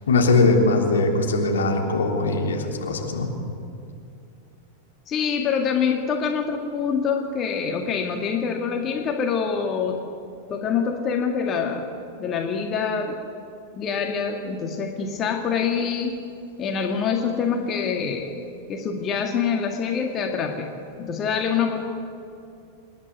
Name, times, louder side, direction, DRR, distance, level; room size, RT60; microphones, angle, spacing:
voice 1, 0.1-3.3, left 3 dB, 65° left, 1 dB, 3.2 m, -20 dB
voice 2, 5.1-10.0 10.5-11.9 12.2-13.2 13.8-16.2 16.6-18.4 18.7-20.7 21.0-21.9, left 6 dB, 30° left, 3 dB, 1.9 m, -25 dB
27.0 x 11.0 x 9.6 m, 2.5 s
figure-of-eight pair, 90°, 0 cm